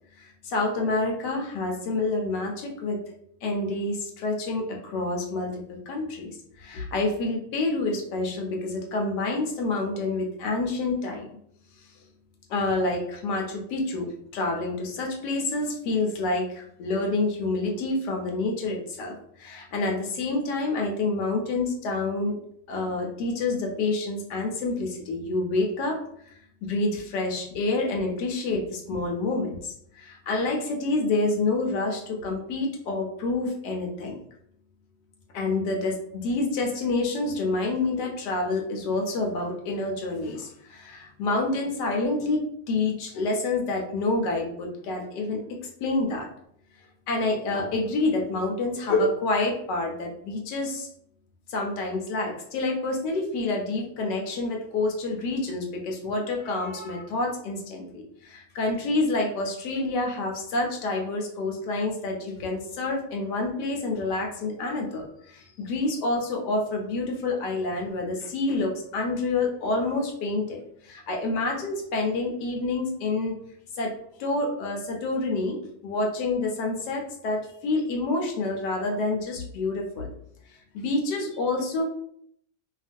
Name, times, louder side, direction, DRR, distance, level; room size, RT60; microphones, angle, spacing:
voice 1, 0.2-3.0 3.4-6.3 6.6-11.3 12.5-22.4 22.7-26.0 26.3-34.2 35.3-46.3 47.1-50.9 51.5-73.3 73.7-73.9 74.2-80.1 80.7-81.8, left 2 dB, 75° left, 1 dB, 1.1 m, -28 dB
2.8 x 2.4 x 2.5 m, 0.69 s
omnidirectional pair, 1.9 m